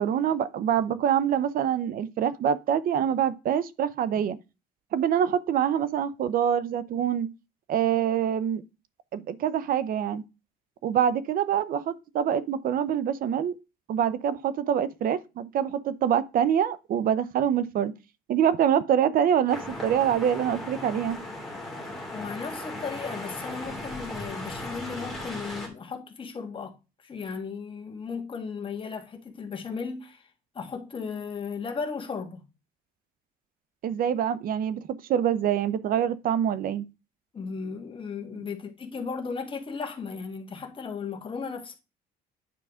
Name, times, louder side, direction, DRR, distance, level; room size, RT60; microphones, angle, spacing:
voice 1, 0.0-4.4 4.9-7.3 7.7-8.6 9.1-10.2 10.8-13.6 13.9-17.9 18.3-21.2 33.8-34.8 35.1-36.9, right 9 dB, 60° right, 0.7 m, -25 dB
sound 1, 19.5-25.7, left 1 dB, ahead, 2.7 m, -37 dB
voice 2, 22.1-26.8 27.0-30.3 30.5-32.4 37.3-41.8, left 5 dB, 30° left, 1.7 m, -35 dB
9.5 x 4.8 x 3.6 m
cardioid pair, 110°, 17 cm